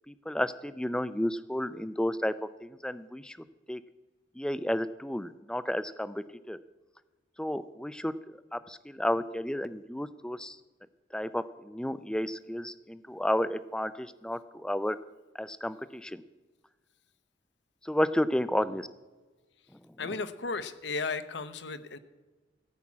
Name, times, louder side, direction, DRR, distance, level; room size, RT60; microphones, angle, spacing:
voice 1, 0.1-2.3 2.6-3.4 3.7-3.8 4.4-6.6 7.4-10.6 11.1-15.0 15.4-16.2 17.8-18.9, left 1 dB, 5° left, 14 dB, 0.4 m, -32 dB
voice 2, 20.0-22.0, left 4 dB, 65° left, 12 dB, 0.8 m, -35 dB
15.0 x 5.9 x 8.5 m, 1.2 s
head